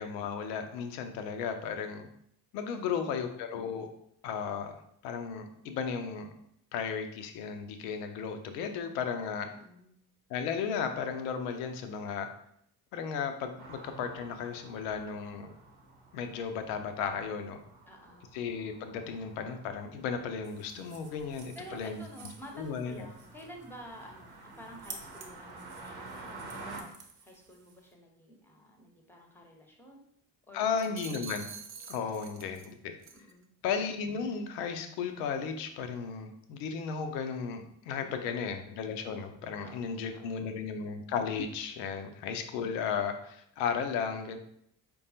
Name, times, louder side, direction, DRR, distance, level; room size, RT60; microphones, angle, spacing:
voice 1, 0.0-2.1 2.5-3.9 4.2-4.8 5.0-6.3 6.7-9.5 10.3-12.3 12.9-15.5 16.1-17.6 18.3-22.0 22.6-23.1 30.5-31.5 31.9-33.0 33.6-44.4, left 6 dB, 75° left, 6 dB, 0.6 m, -35 dB
voice 2, 2.7-3.1 9.5-10.0 17.9-18.4 21.1-21.2 21.5-30.0 30.5-31.3 33.1-33.5 39.5-40.5, equal, 5° left, 1 dB, 0.8 m, -51 dB
sound 1, 13.6-26.8, right 3 dB, 75° right, 0.9 m, -50 dB
sound 2, 20.4-27.9, right 4 dB, 45° right, 0.8 m, -52 dB
sound 3, 30.8-32.7 33.0-33.3, right 6 dB, 30° right, 0.4 m, -46 dB
4.6 x 2.3 x 2.7 m, 0.70 s
hypercardioid pair, 45°, 50 cm